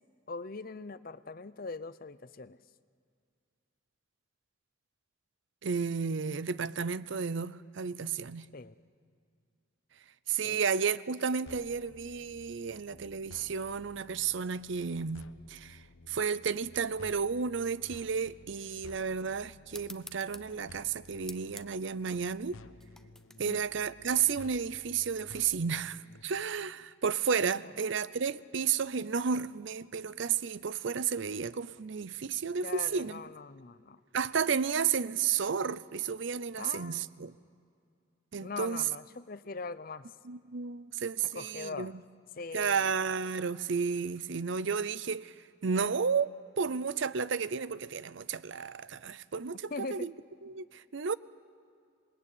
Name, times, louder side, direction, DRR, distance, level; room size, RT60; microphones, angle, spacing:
voice 1, 0.3-2.6 8.5-8.8 10.4-10.6 23.5-23.6 27.6-27.7 32.6-34.0 36.6-37.1 38.4-40.1 41.3-41.9 42.4-42.9 49.7-50.1, left 4 dB, 45° left, 0.6 m, -41 dB
voice 2, 5.6-8.5 10.3-22.6 23.4-33.2 34.1-37.3 38.3-38.9 40.2-42.0 42.5-45.3 45.6-46.3 46.6-50.1 50.4-51.1, right 6 dB, 65° right, 0.6 m, -32 dB
sound 1, 11.5-26.2, left 3 dB, 85° left, 0.9 m, -54 dB
sound 2, 19.7-24.8, left 1 dB, ahead, 0.5 m, -52 dB
26.5 x 20.5 x 8.6 m
head